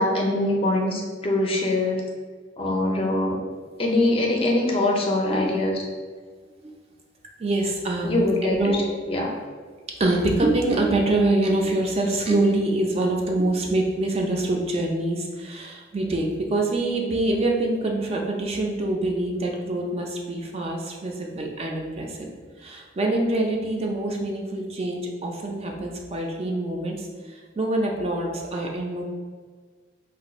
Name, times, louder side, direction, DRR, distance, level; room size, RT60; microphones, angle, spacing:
voice 1, 0.0-2.0 2.6-3.4 3.8-5.8 8.0-8.8 9.1-9.3, left 2 dB, 30° left, 0 dB, 0.4 m, -23 dB
voice 2, 7.4-8.8 10.0-22.3 22.6-29.0, right 2 dB, 35° right, 0 dB, 0.4 m, -25 dB
2.5 x 2.3 x 4.1 m, 1.5 s
head